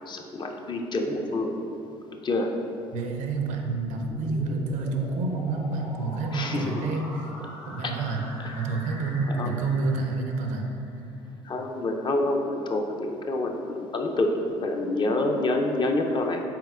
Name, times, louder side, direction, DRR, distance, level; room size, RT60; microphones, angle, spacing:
voice 1, 0.1-1.5 2.2-2.5 6.3-6.7 7.8-7.9 8.4-8.6 9.3-9.5 11.5-16.4, left 2 dB, 35° left, 3 dB, 0.4 m, -27 dB
voice 2, 2.9-7.3 7.7-8.2 8.5-10.7, right 3 dB, 65° right, 3 dB, 0.5 m, -28 dB
sound 1, 3.5-11.2, left 1 dB, 75° left, 1.1 m, -43 dB
4.4 x 3.5 x 2.3 m, 2.6 s
hypercardioid pair, 65°, 14 cm